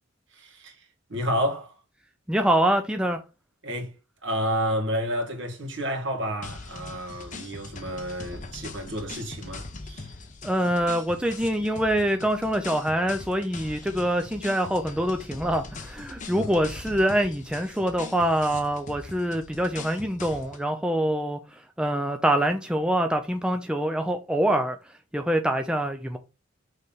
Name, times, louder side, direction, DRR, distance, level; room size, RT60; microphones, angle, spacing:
voice 1, 0.3-0.8 1.1-1.7 3.6-3.9 4.2-10.1 16.3-16.5, equal, 60° right, 2.0 m, -30 dB
voice 2, 2.3-3.2 10.4-24.8 25.1-26.2, right 1 dB, 5° right, 0.5 m, -25 dB
sound 1, 6.4-20.7, left 3 dB, 35° left, 1.2 m, -41 dB
6.6 x 3.4 x 5.5 m
head